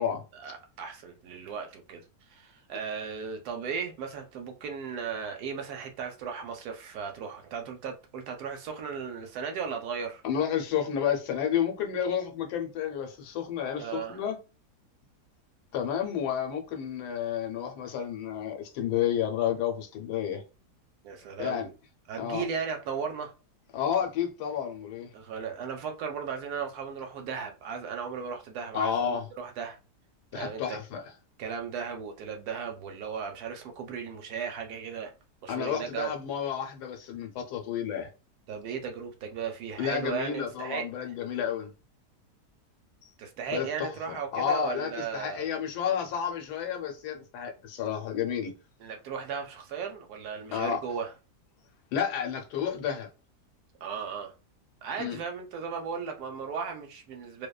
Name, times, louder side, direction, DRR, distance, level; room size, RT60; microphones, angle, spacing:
voice 1, 0.3-10.2 13.8-14.2 21.0-21.7 22.1-23.3 25.1-29.8 30.3-30.8 31.4-35.1 35.4-36.1 38.5-41.1 43.2-45.5 48.8-51.1 53.8-54.3 54.8-57.5, right 6 dB, 75° right, 1.0 m, -36 dB
voice 2, 10.2-14.4 15.7-20.4 21.4-21.7 22.2-22.4 23.7-25.1 28.7-29.2 30.3-31.0 35.5-38.1 39.8-41.7 43.5-48.5 50.5-50.8 51.9-53.1 55.0-55.2, left 8 dB, 80° left, 1.2 m, -31 dB
2.7 x 2.1 x 2.2 m
omnidirectional pair, 1.7 m